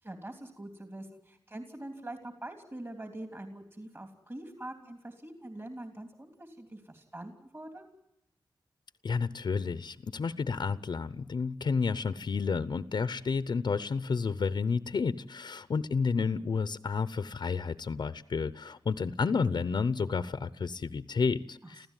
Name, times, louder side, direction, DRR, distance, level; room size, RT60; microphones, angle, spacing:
voice 1, 0.0-7.9 21.6-21.9, right 1 dB, 30° right, 5 dB, 3.2 m, -44 dB
voice 2, 9.0-21.9, left 5 dB, 60° left, 14 dB, 0.8 m, -31 dB
26.0 x 15.5 x 9.2 m, 0.86 s
wide cardioid pair, 75°, 8 cm